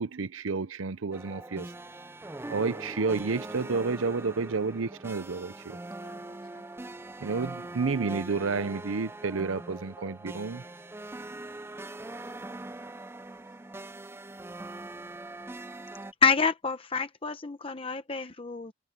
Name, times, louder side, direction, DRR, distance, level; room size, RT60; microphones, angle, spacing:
voice 1, 0.0-1.7 2.5-5.8 7.2-10.6, right 4 dB, 75° right, 0.7 m, -30 dB
sound 1, 1.1-16.1, right 2 dB, 10° right, 0.4 m, -42 dB
voice 2, 5.9-7.0 10.5-11.2, left 2 dB, 75° left, 4.7 m, -62 dB
voice 3, 16.2-18.7, left 5 dB, 25° left, 0.9 m, -27 dB
head